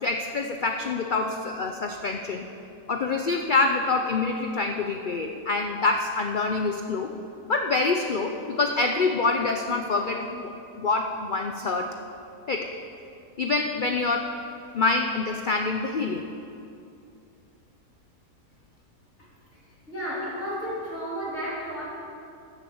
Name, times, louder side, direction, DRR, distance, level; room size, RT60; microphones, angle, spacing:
voice 1, 0.0-2.4 2.9-7.1 7.5-10.5 10.8-11.9 12.5-12.7 13.4-14.3 14.7-16.3, left 3 dB, 65° left, 4 dB, 0.5 m, -26 dB
voice 2, 19.9-21.8, equal, 40° left, -9 dB, 3.9 m, -32 dB
14.5 x 6.8 x 7.1 m, 2.6 s
omnidirectional pair, 1.7 m